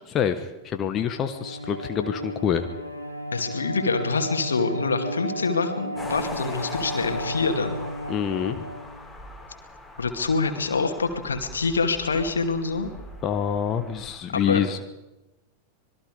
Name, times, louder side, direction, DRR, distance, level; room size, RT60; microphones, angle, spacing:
voice 1, 0.1-2.6 8.1-8.6 13.2-14.8, left 8 dB, 30° left, 7 dB, 1.3 m, -26 dB
Bowed string instrument, 0.9-9.3, equal, 90° right, 2.6 m, -33 dB
voice 2, 3.3-7.8 10.0-12.9 14.3-14.6, left 4 dB, 70° left, 6 dB, 2.4 m, -26 dB
sound 1, 6.0-14.2, left 1 dB, 5° left, 6.3 m, -41 dB
25.5 x 21.0 x 5.2 m, 1.0 s
figure-of-eight pair, 90°, 0 cm